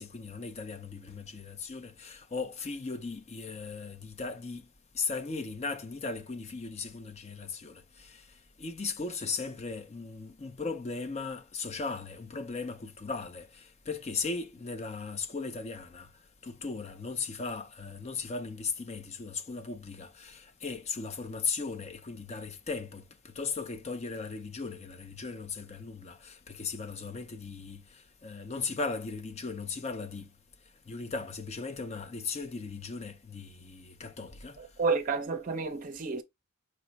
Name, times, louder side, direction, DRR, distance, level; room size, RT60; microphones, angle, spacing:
voice 1, 0.0-4.6 4.9-8.2 8.6-16.1 16.4-27.8 28.2-30.3 30.9-34.6, left 4 dB, 30° left, 0.5 m, -37 dB
voice 2, 34.6-36.2, right 4 dB, 40° right, 0.6 m, -30 dB
5.1 x 2.1 x 3.9 m
head